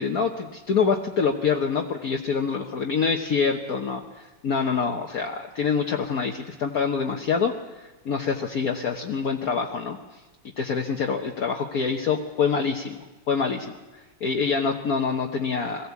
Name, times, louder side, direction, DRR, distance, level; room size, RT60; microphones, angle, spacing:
voice 1, 0.0-10.0 10.6-13.0 13.3-15.9, left 5 dB, 55° left, 2 dB, 1.4 m, -26 dB
21.5 x 15.5 x 8.3 m, 1.2 s
omnidirectional pair, 2.0 m